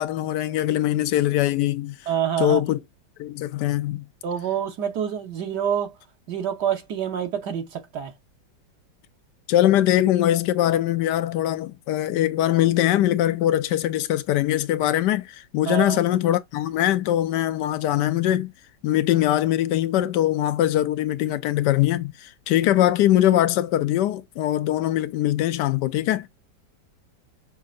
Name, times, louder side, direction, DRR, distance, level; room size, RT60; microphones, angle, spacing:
voice 1, 0.0-2.0 2.4-2.8 3.2-4.1 9.5-18.5 18.8-26.3, left 13 dB, 75° left, 1.1 m, -22 dB
voice 2, 2.1-2.6 4.2-5.9 6.3-8.1 15.7-16.0, right 9 dB, 65° right, 1.4 m, -27 dB
6.4 x 2.7 x 2.5 m
omnidirectional pair, 2.0 m